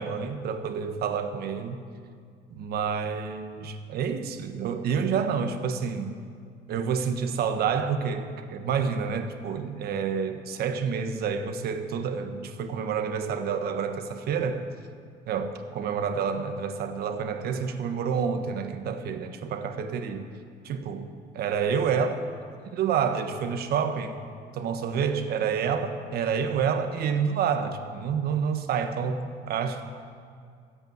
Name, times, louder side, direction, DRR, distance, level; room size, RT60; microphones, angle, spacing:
voice 1, 0.0-1.8 2.5-6.1 6.7-14.6 15.3-20.3 20.6-21.1 21.3-22.2 22.7-24.2 24.5-29.8, right 6 dB, 65° right, 8 dB, 1.3 m, -28 dB
13.0 x 8.6 x 9.2 m, 2.2 s
cardioid pair, 110°, 17 cm